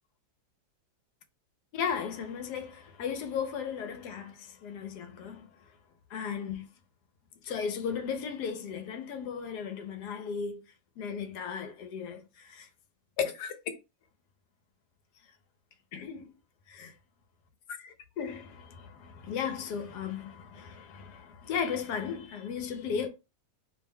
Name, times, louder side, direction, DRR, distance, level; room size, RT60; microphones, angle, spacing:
voice 1, 1.7-5.7 6.1-6.7 7.4-10.6 11.0-12.7 13.2-13.6 15.9-16.3 16.7-16.9 17.7-23.1, left 7 dB, 90° left, 1.2 m, -36 dB
2.9 x 2.2 x 3.4 m
omnidirectional pair, 1.7 m